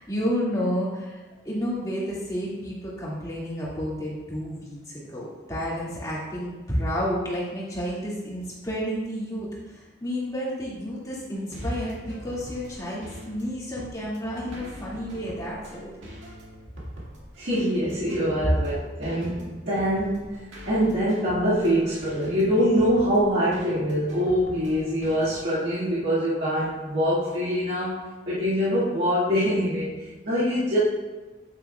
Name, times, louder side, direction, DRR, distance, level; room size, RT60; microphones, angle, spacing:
voice 1, 0.0-15.9, equal, 20° left, -7 dB, 2.0 m, -31 dB
sound 1, 11.3-25.4, equal, 85° right, 1.9 m, -44 dB
voice 2, 17.4-30.8, equal, 65° right, -11 dB, 1.8 m, -24 dB
8.7 x 8.1 x 2.3 m, 1.2 s
head